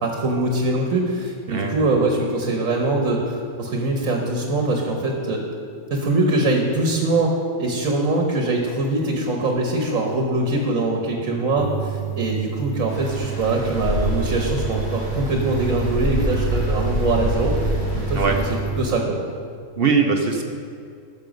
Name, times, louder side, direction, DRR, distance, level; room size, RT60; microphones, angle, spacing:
voice 1, 0.0-5.4 5.9-19.2, right 2 dB, 70° right, 1 dB, 1.5 m, -23 dB
voice 2, 1.5-1.9 18.1-18.4 19.8-20.4, right 5 dB, 50° right, 3 dB, 0.9 m, -21 dB
sound 1, 11.6-18.8, right 8 dB, 85° right, 1.4 m, -29 dB
Stream, 12.9-18.6, left 1 dB, 70° left, 3.0 m, -26 dB
12.5 x 6.5 x 5.2 m, 2.3 s
omnidirectional pair, 1.5 m